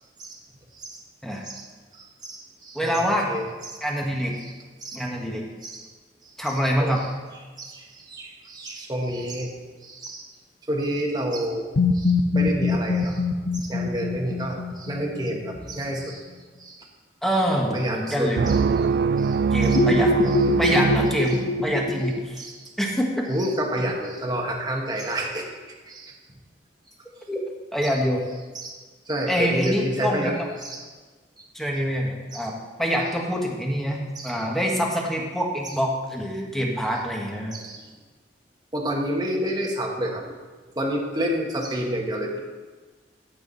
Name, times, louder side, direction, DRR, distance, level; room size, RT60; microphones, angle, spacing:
voice 1, 1.9-3.8 4.8-5.0 5.6-5.8 6.2-6.3 6.8-7.1 7.6-9.5 9.8-10.2 10.7-11.6 11.9-13.2 13.5-16.2 16.6-16.9 17.7-18.6 19.2-19.4 19.6-19.8 20.6-20.7 22.4-22.6 23.3-25.5 25.9-26.1 27.8-27.9 28.5-28.8 29.1-30.3 30.6-30.9 32.3-32.5 34.1-34.4 37.5-37.8 38.7-40.3 40.7-42.4, right 1 dB, 25° right, 0 dB, 1.5 m, -29 dB
voice 2, 2.7-3.3 3.8-4.3 4.9-5.4 6.4-7.0 17.2-18.4 19.5-20.1 20.6-22.4 22.8-23.3 27.3-27.4 27.7-28.2 29.3-30.3 31.5-32.5 32.8-37.6, equal, ahead, -1 dB, 1.6 m, -25 dB
sound 1, 11.8-15.7 19.8-22.2, left 3 dB, 90° left, 0.9 m, -24 dB
sound 2, 18.4-21.9, right 5 dB, 60° right, 0.3 m, -23 dB
15.0 x 8.2 x 4.1 m, 1.4 s
head